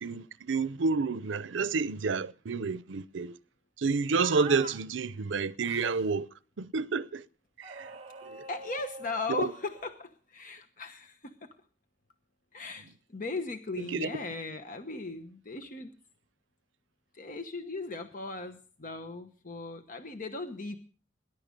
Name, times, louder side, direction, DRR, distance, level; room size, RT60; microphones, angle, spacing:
voice 1, 0.0-3.3 3.8-6.3 6.6-7.2 7.7-7.9 8.3-8.4 9.4-9.5 13.9-14.1, right 4 dB, 85° right, 0.6 m, -29 dB
sound 1, 4.2-4.8 5.6-6.1 7.6-9.9, right 3 dB, 35° right, 2.2 m, -44 dB
voice 2, 8.5-11.5 12.5-15.9 17.1-20.8, left 3 dB, 45° left, 1.1 m, -38 dB
20.0 x 11.0 x 5.2 m
head